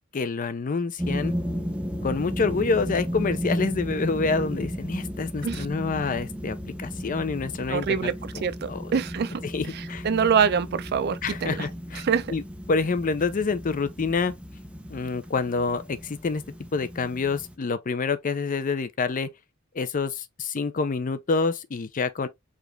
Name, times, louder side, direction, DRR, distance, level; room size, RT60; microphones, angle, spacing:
voice 1, 0.1-1.3 2.0-9.0 9.4-10.1 11.2-12.0 12.3-12.4 12.7-14.3 14.9-16.4 16.7-19.3 19.7-22.3, left 4 dB, 40° left, 0.5 m, -27 dB
sound 1, 1.0-17.5, equal, 5° right, 0.6 m, -34 dB
voice 2, 7.6-9.4 10.0-11.7 12.0-12.3, right 6 dB, 50° right, 0.4 m, -25 dB
4.9 x 2.4 x 3.1 m
head